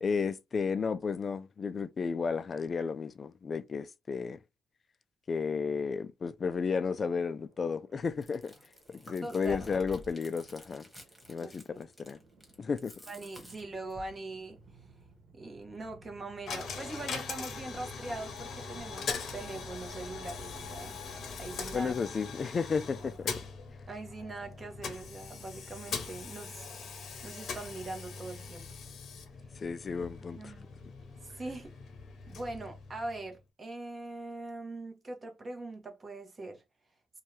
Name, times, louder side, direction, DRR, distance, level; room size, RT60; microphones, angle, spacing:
voice 1, 0.0-4.4 5.3-8.5 8.9-10.8 11.3-12.2 12.6-12.9 21.7-23.3 29.6-30.5, left 5 dB, 40° left, 0.4 m, -33 dB
sound 1, 7.5-22.5, left 1 dB, 80° right, 1.0 m, -56 dB
Chewing mastication, 8.1-14.1, left 1 dB, 5° left, 1.2 m, -50 dB
voice 2, 9.2-9.6 11.4-11.8 13.1-14.6 15.3-21.0 21.4-21.9 23.9-26.7 27.2-28.7 30.3-30.7 31.2-31.7 32.3-36.6, right 2 dB, 35° right, 0.9 m, -42 dB
Coin (dropping), 16.5-33.4, left 5 dB, 65° left, 0.8 m, -42 dB
2.7 x 2.3 x 3.1 m
cardioid pair, 90°, 0 cm